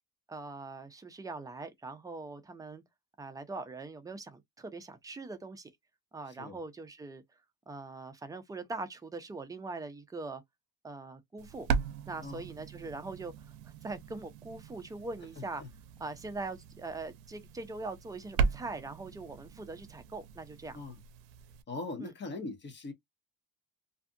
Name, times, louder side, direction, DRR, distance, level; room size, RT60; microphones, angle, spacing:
voice 1, 0.3-2.8 3.2-5.7 6.1-7.2 7.7-10.4 10.8-11.7 12.1-15.6 16.0-20.8 22.0-22.1, right 3 dB, 10° right, 0.3 m, -42 dB
sound 1, 11.4-21.6, right 6 dB, 85° right, 0.5 m, -38 dB
voice 2, 21.7-22.9, left 3 dB, 30° left, 0.8 m, -40 dB
2.6 x 2.3 x 2.6 m
cardioid pair, 125°, 35 cm